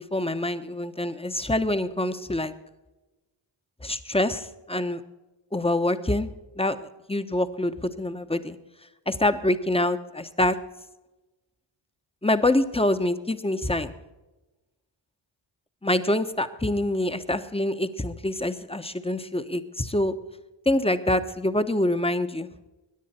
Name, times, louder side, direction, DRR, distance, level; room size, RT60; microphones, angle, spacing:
voice 1, 0.0-2.5 3.8-5.0 5.5-6.3 6.6-8.6 9.1-10.6 12.2-13.9 15.8-20.1 20.6-22.5, left 1 dB, 10° left, 10 dB, 1.1 m, -25 dB
22.0 x 10.0 x 4.4 m, 1.1 s
cardioid pair, 55°, 49 cm